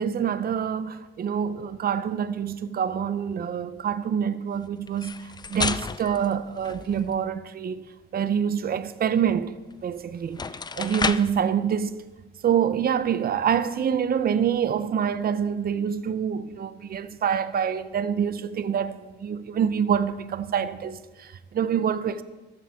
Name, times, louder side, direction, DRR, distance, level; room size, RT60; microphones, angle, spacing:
voice 1, 0.0-9.5 9.8-10.4 10.7-12.0 12.4-22.2, right 8 dB, 50° right, 0.8 m, -26 dB
sound 1, 4.9-7.3 9.7-9.8 10.2-11.4, left 4 dB, 20° left, 0.4 m, -31 dB
13.5 x 13.0 x 3.7 m
cardioid pair, 90°, 20 cm